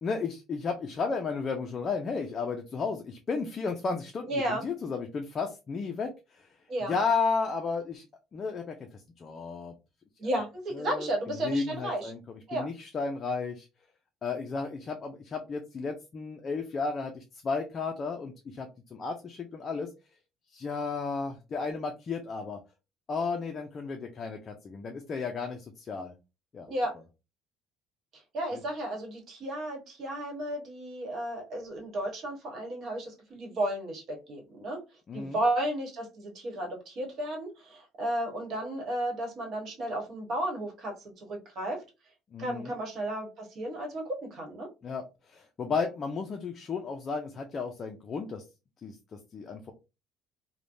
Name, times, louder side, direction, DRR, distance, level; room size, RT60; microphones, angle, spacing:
voice 1, 0.0-6.5 6.8-8.1 8.3-8.8 9.2-9.8 10.7-13.7 14.2-19.9 20.5-22.6 23.1-26.1 26.5-26.7 28.5-28.6 35.1-35.4 42.3-42.7 44.8-48.4 48.8-49.7, left 4 dB, 30° left, 4 dB, 0.4 m, -33 dB
voice 2, 4.3-4.7 6.7-6.9 10.2-12.1 12.5-12.6 26.7-26.9 28.3-34.8 35.1-41.8 42.4-44.7, right 1 dB, 50° right, 0 dB, 1.2 m, -33 dB
3.2 x 2.1 x 2.5 m, 0.28 s
cardioid pair, 145°, 0 cm